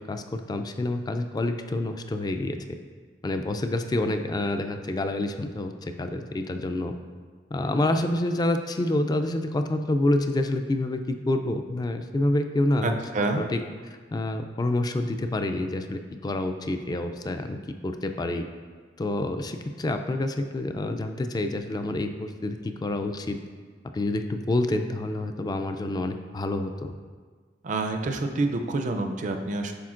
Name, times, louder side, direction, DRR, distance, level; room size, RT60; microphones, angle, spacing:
voice 1, 0.0-2.6 3.2-6.9 7.5-13.0 13.4-13.6 14.1-17.6 17.8-18.4 19.0-23.4 23.9-26.9, left 1 dB, 20° left, 7 dB, 0.3 m, -27 dB
voice 2, 12.8-13.4 27.6-29.7, right 2 dB, 45° right, 5 dB, 0.4 m, -27 dB
10.0 x 4.3 x 2.5 m, 1.5 s
head